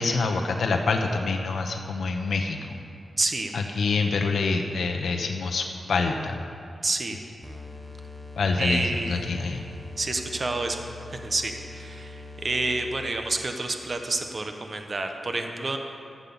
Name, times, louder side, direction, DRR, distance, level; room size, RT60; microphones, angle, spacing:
voice 1, 0.0-2.8 3.5-6.4 8.4-9.6, left 4 dB, 75° left, 3 dB, 0.8 m, -26 dB
voice 2, 3.2-3.5 6.8-7.2 8.6-9.3 10.0-10.8 11.1-15.8, right 2 dB, 35° right, 5 dB, 1.0 m, -29 dB
sound 1, 7.4-13.3, left 2 dB, ahead, 0.9 m, -42 dB
13.5 x 7.3 x 7.1 m, 2.5 s
wide cardioid pair, 130°, 0 cm